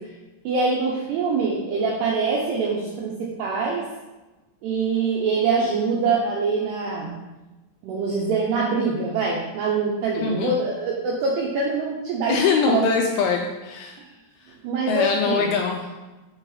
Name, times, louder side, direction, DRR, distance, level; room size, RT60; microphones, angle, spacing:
voice 1, 0.4-3.9 4.6-7.2 7.8-12.4 12.7-12.8 14.6-15.5, right 4 dB, 80° right, -3 dB, 2.4 m, -24 dB
voice 2, 10.2-10.6 12.3-13.9 14.9-15.9, left 5 dB, 85° left, 2 dB, 2.7 m, -23 dB
8.8 x 4.0 x 5.6 m, 1.1 s
omnidirectional pair, 6.0 m